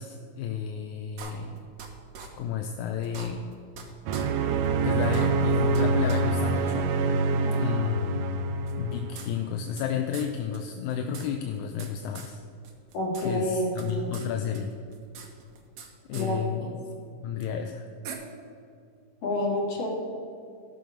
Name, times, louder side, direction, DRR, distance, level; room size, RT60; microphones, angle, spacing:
voice 1, 0.0-1.6 2.4-3.5 4.8-6.9 7.6-8.3 8.8-12.4 13.2-14.7 16.1-16.7 17.2-17.9, left 8 dB, 80° left, 5 dB, 1.8 m, -32 dB
sound 1, 1.2-1.9 2.1-2.3 2.6-2.7 3.0-3.8 4.1-4.2 4.6-4.7 5.0-5.8 6.1-6.2 6.6-6.7 7.5-7.6 8.7-9.9 10.1-10.3 10.5-10.6 10.9-11.9 12.1-12.3 12.6-13.3 13.5-14.3 14.5-15.9 16.1-16.3 17.4-17.5 18.0-18.1, right 6 dB, 65° right, 2.0 m, -42 dB
sound 2, 4.1-9.2, right 3 dB, 80° right, 1.4 m, -25 dB
voice 2, 7.3-7.7 12.9-14.2 16.1-16.7 19.2-19.9, left 1 dB, 50° left, -4 dB, 3.2 m, -29 dB
14.0 x 6.2 x 5.1 m, 2.4 s
omnidirectional pair, 3.6 m